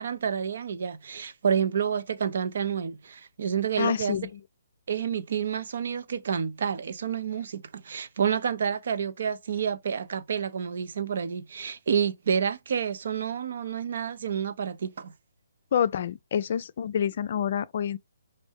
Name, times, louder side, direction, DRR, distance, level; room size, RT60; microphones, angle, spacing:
voice 1, 0.0-4.2 4.9-15.1, right 7 dB, 55° right, 0.6 m, -29 dB
voice 2, 3.8-4.4 15.7-18.0, left 8 dB, 50° left, 0.4 m, -27 dB
5.2 x 2.6 x 3.4 m
figure-of-eight pair, 140°, 0 cm